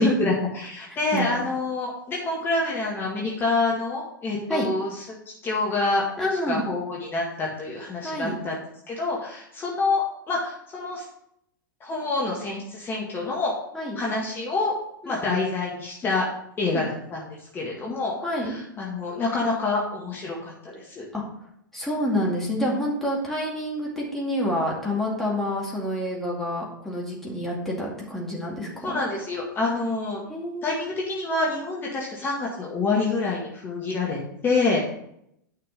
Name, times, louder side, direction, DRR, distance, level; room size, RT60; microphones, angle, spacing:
voice 1, 0.0-4.9 5.3-6.1 6.5-8.6 8.9-11.1 11.8-13.5 14.0-14.7 15.1-16.3 16.6-18.1 18.4-21.1 28.8-30.2 30.6-34.8, left 3 dB, 20° left, -3 dB, 1.9 m, -27 dB
voice 2, 6.2-6.7 8.0-8.4 13.7-14.0 15.0-15.4 16.7-16.8 18.2-18.5 21.1-21.2 21.7-29.0 30.3-30.8, equal, 5° left, -4 dB, 2.3 m, -28 dB
9.5 x 5.9 x 5.3 m, 0.75 s
figure-of-eight pair, 100°, 11 cm